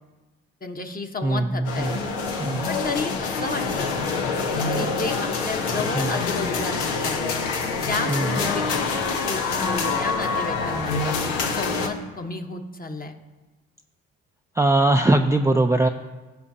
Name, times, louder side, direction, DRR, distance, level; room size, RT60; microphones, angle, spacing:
voice 1, 0.6-2.1 2.7-4.1 4.4-7.2 7.9-8.6 9.2-11.2 11.5-13.2, left 3 dB, 25° left, 5 dB, 1.1 m, -32 dB
voice 2, 1.2-2.0 2.4-2.7 5.9-6.1 8.1-8.3 14.6-15.9, right 2 dB, 10° right, 4 dB, 0.4 m, -20 dB
sound 1, 1.6-11.9, left 4 dB, 90° left, 0.8 m, -26 dB
16.0 x 5.8 x 2.8 m, 1.2 s
hypercardioid pair, 45°, 33 cm